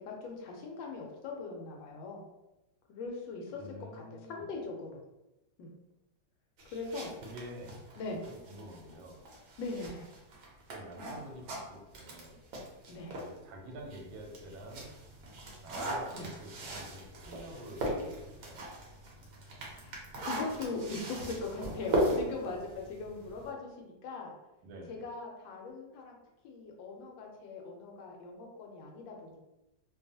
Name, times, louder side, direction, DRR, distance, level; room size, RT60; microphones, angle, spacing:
voice 1, 0.0-2.3 2.9-3.6 3.9-4.0 4.3-5.0 5.6-5.7 6.7-7.1 8.0-8.3 9.6-10.1 12.9-13.1 16.1-16.3 19.7-24.3 24.9-26.2 26.4-29.4, left 3 dB, 85° left, 0 dB, 1.3 m, -40 dB
voice 2, 3.5-4.5 7.2-7.8 8.3-9.2 10.7-12.4 13.2-14.9 15.6-18.6 24.6-25.0, right 1 dB, 85° right, 1 dB, 1.4 m, -48 dB
sound 1, 6.6-13.4 13.8-23.5, right 1 dB, 65° right, 1.0 m, -38 dB
3.0 x 2.3 x 2.6 m, 0.96 s
omnidirectional pair, 2.0 m